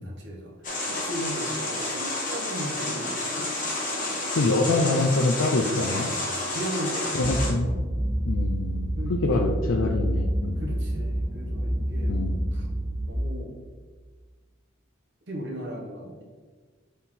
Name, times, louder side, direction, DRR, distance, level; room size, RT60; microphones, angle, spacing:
voice 1, 0.0-3.5 4.1-4.2 6.5-8.0 8.9-9.5 10.6-12.2 12.5-12.7 13.1-13.6 15.3-16.2, right 1 dB, 55° right, 0 dB, 1.2 m, -37 dB
sound 1, 0.6-7.5, left 2 dB, 40° left, 1.4 m, -30 dB
voice 2, 4.3-6.1 7.1-7.7 8.3-10.6 12.1-12.4, left 2 dB, 80° left, 2 dB, 0.5 m, -25 dB
sound 2, 7.2-13.1, right 1 dB, 10° right, 0.5 m, -28 dB
6.3 x 4.1 x 3.9 m, 1.4 s
head